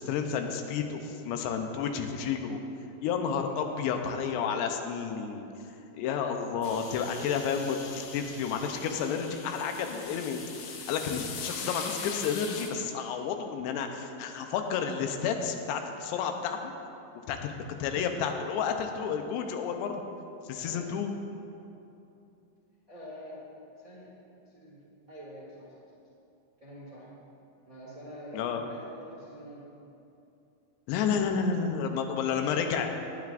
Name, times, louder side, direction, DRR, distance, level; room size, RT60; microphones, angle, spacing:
voice 1, 0.0-2.6 3.0-5.4 6.0-16.7 17.3-20.0 20.5-21.1 28.3-28.6 30.9-32.9, left 6 dB, 90° left, 5 dB, 3.0 m, -31 dB
voice 2, 3.4-3.7 20.6-21.1 22.9-23.5 23.7-24.1 24.5-24.8 25.1-25.7 26.6-27.1 27.6-29.7, equal, 40° right, -7 dB, 1.3 m, -46 dB
sound 1, 6.6-12.7, left 5 dB, 70° left, 2.8 m, -41 dB
19.5 x 9.3 x 2.5 m, 2.7 s
omnidirectional pair, 4.8 m